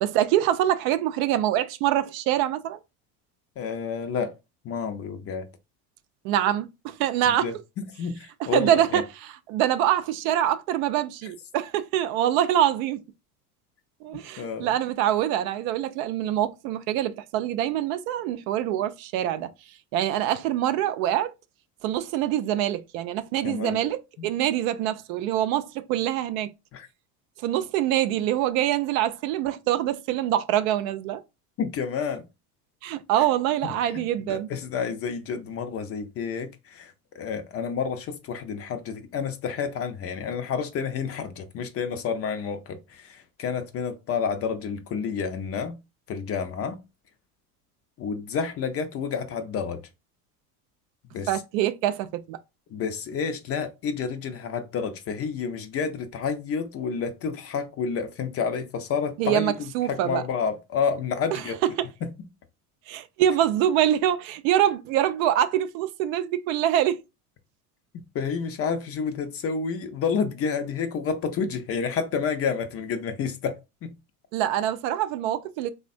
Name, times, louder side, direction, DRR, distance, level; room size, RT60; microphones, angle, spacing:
voice 1, 0.0-2.8 6.2-7.5 8.4-9.0 9.5-13.0 14.0-19.5 19.9-21.3 21.8-26.5 27.4-31.2 32.8-34.5 51.3-52.4 59.2-60.2 61.3-61.4 62.9-67.0 74.3-75.7, right 12 dB, 65° right, 0.5 m, -25 dB
voice 2, 3.6-4.3 4.6-5.5 7.3-9.0 14.4-14.7 23.4-23.8 24.2-24.3 26.7-26.9 31.6-32.3 33.8-45.8 46.1-46.8 48.0-49.8 51.1-51.3 52.7-59.5 59.9-61.6 62.0-62.1 68.1-73.6 73.8-73.9, left 6 dB, 35° left, 0.5 m, -30 dB
3.3 x 2.1 x 2.5 m
hypercardioid pair, 90°, 45 cm